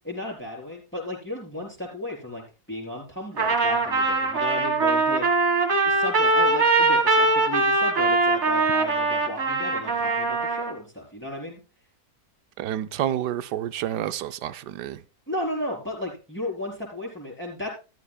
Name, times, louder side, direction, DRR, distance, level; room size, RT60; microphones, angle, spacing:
voice 1, 0.0-5.3 5.8-11.6 15.3-17.7, left 1 dB, 5° left, 4.5 m, -34 dB
Trumpet, 3.4-10.7, right 3 dB, 45° right, 2.1 m, -22 dB
voice 2, 12.6-15.0, right 11 dB, 90° right, 1.3 m, -29 dB
13.5 x 13.0 x 2.3 m
omnidirectional pair, 1.7 m